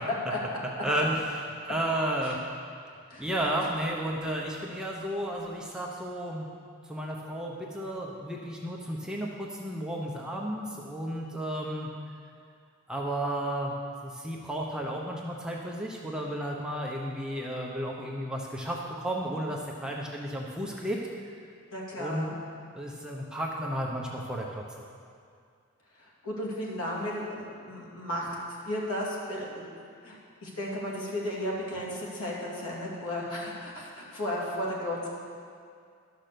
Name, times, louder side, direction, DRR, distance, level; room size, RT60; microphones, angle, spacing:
voice 1, 0.8-1.4 1.6-2.4 3.2-6.5 6.8-11.9 12.9-13.8 14.0-21.0 22.0-22.3 22.7-24.6, right 1 dB, 5° right, -2 dB, 0.8 m, -32 dB
voice 2, 21.7-22.3 26.0-28.3 28.6-29.6 30.0-35.1, left 1 dB, 80° left, -4 dB, 2.5 m, -34 dB
12.0 x 6.0 x 6.7 m, 2.3 s
head